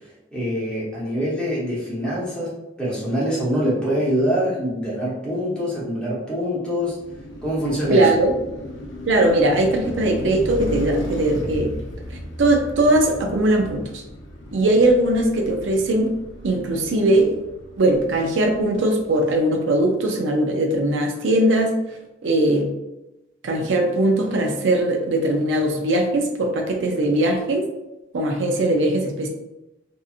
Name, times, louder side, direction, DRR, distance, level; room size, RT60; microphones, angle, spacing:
voice 1, 0.3-2.5 2.8-7.0 7.4-8.1, equal, 5° left, -8 dB, 0.9 m, -24 dB
Car passing by, 6.8-19.0, equal, 85° left, 0.6 m, -35 dB
voice 2, 7.9-8.4 9.1-11.7 12.4-14.0 14.5-16.1 16.4-17.3 17.8-21.7 22.2-22.7 23.4-27.6 28.1-29.3, right 1 dB, 90° right, 3 dB, 0.5 m, -20 dB
2.7 x 2.6 x 2.4 m, 0.94 s
head